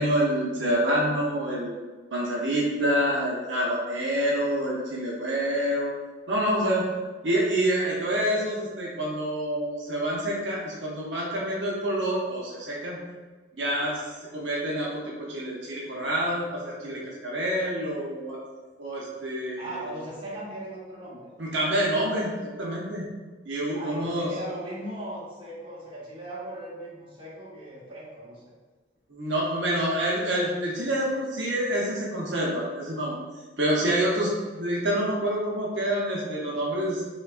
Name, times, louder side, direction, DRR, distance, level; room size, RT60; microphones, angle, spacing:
voice 1, 0.0-1.8 2.1-5.9 6.3-6.8 7.2-13.0 13.5-14.0 14.3-18.4 18.8-19.8 21.4-23.1 23.5-24.3 29.1-33.1 33.6-37.0, right 1 dB, 75° right, -4 dB, 0.7 m, -27 dB
voice 2, 19.6-21.3 23.7-28.4, right 1 dB, 30° right, -8 dB, 1.0 m, -38 dB
4.5 x 2.3 x 2.4 m, 1.3 s
head